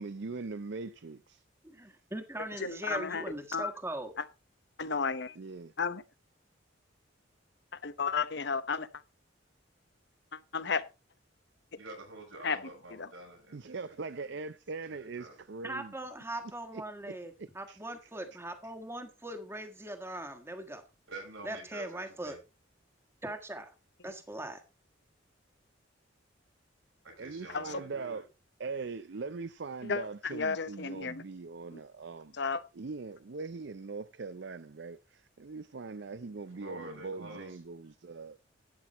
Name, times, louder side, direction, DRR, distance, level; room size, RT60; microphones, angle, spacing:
voice 1, 0.0-1.4 5.4-5.7 13.5-15.9 16.7-17.8 27.2-28.3 28.6-32.4 32.7-38.4, right 4 dB, 60° right, 0.5 m, -41 dB
voice 2, 1.6-4.1 15.6-20.8 21.4-22.4 23.2-23.7 24.0-24.6, right 1 dB, 15° right, 1.5 m, -40 dB
voice 3, 2.4-3.2 3.5-3.7 4.2-4.3 4.8-5.4 5.8-6.0 7.7-8.9 10.3-10.8 12.4-12.6 13.0-13.1 27.5-27.8 29.8-31.2 31.7-31.8 32.3-32.6, left 5 dB, 60° left, 0.9 m, -33 dB
voice 4, 11.7-14.4 14.8-15.4 21.1-22.4 27.0-28.2 36.5-37.6, right 2 dB, 85° right, 6.2 m, -48 dB
12.0 x 9.3 x 4.1 m
head